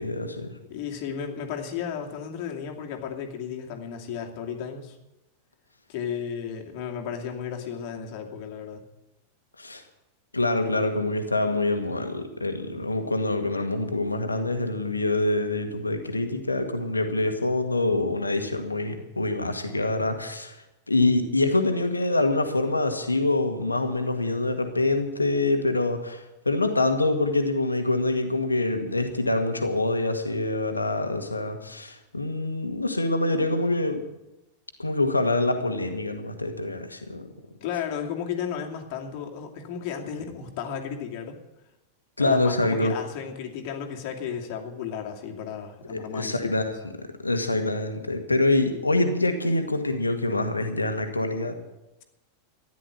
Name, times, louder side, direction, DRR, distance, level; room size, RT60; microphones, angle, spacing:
voice 1, 0.0-0.6 9.6-9.8 10.3-34.0 34.8-37.3 42.2-42.9 45.9-51.5, left 2 dB, 80° left, 6 dB, 1.8 m, -25 dB
voice 2, 0.7-5.0 5.9-8.8 21.0-21.1 37.6-41.4 42.2-46.7, left 7 dB, 45° left, 1 dB, 2.6 m, -34 dB
14.0 x 10.5 x 7.9 m, 0.94 s
figure-of-eight pair, 90°, 0 cm